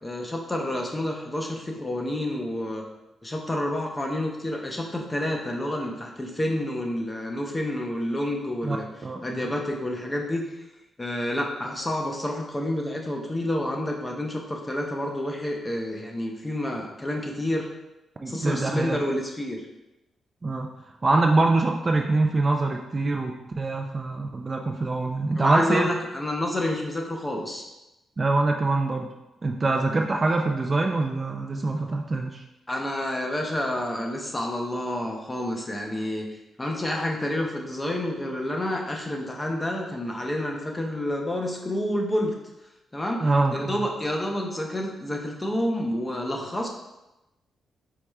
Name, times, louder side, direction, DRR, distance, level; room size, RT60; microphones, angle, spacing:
voice 1, 0.0-2.9 3.2-8.9 9.2-10.5 11.0-17.7 18.3-19.6 25.4-27.7 32.7-36.3 36.6-42.3 42.9-46.7, left 1 dB, 15° left, 1 dB, 0.7 m, -29 dB
voice 2, 8.6-9.5 18.2-19.0 20.4-20.7 21.0-25.9 28.2-29.1 29.4-32.4 43.2-43.9, right 2 dB, 30° right, 2 dB, 0.3 m, -24 dB
4.7 x 4.2 x 2.3 m, 0.95 s
cardioid pair, 110°, 0 cm